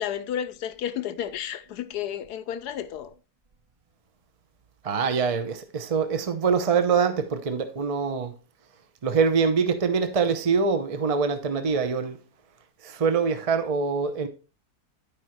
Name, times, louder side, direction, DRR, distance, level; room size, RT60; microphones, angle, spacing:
voice 1, 0.0-3.1, left 10 dB, 80° left, 1.2 m, -32 dB
voice 2, 4.8-8.3 9.0-12.2 12.8-14.3, right 5 dB, 40° right, 0.5 m, -24 dB
11.5 x 5.0 x 3.1 m
omnidirectional pair, 1.7 m